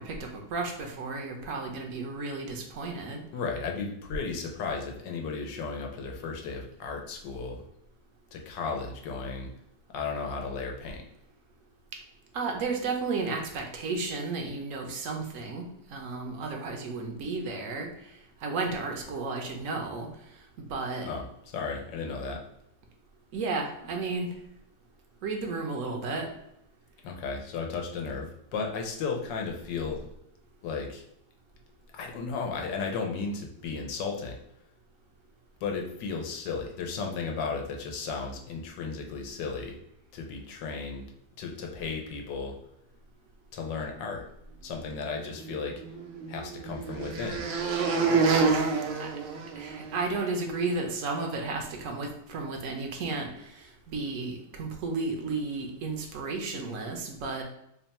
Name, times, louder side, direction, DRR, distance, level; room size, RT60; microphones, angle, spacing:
voice 1, 0.0-3.2 12.3-17.9 18.4-20.1 20.7-21.1 23.3-24.3 25.2-26.3 49.0-49.1 49.6-57.4, right 3 dB, 65° right, 2 dB, 0.9 m, -33 dB
voice 2, 3.3-7.6 8.3-9.5 9.9-11.0 21.0-22.4 27.0-30.1 30.6-31.0 31.9-34.4 35.6-39.8 40.1-41.1 41.4-42.6 43.5-44.2 44.6-45.8 46.3-47.5, left 4 dB, 90° left, 2 dB, 1.3 m, -34 dB
sound 1, 45.4-50.0, right 4 dB, 80° right, 1.3 m, -28 dB
3.4 x 2.2 x 4.1 m, 0.78 s
omnidirectional pair, 1.9 m